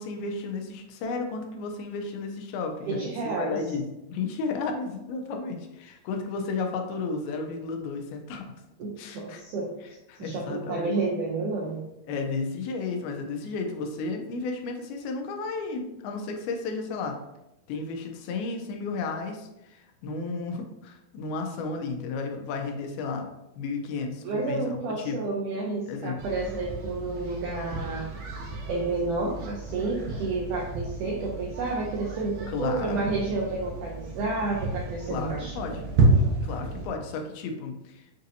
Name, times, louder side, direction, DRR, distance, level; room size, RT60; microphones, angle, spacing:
voice 1, 0.0-3.1 3.4-8.4 9.0-9.4 9.8-10.9 12.1-17.2 17.7-23.3 23.6-25.2 25.9-26.2 32.5-33.2 35.1-35.8 36.4-38.2, left 4 dB, 85° left, 4 dB, 2.5 m, -33 dB
voice 2, 2.9-3.6 8.8-9.8 10.2-11.8 24.2-28.1 28.7-35.7, right 3 dB, 85° right, -2 dB, 1.8 m, -30 dB
sound 1, 26.2-36.9, right 2 dB, 70° right, 2.1 m, -30 dB
7.3 x 2.7 x 2.7 m, 0.89 s
omnidirectional pair, 4.3 m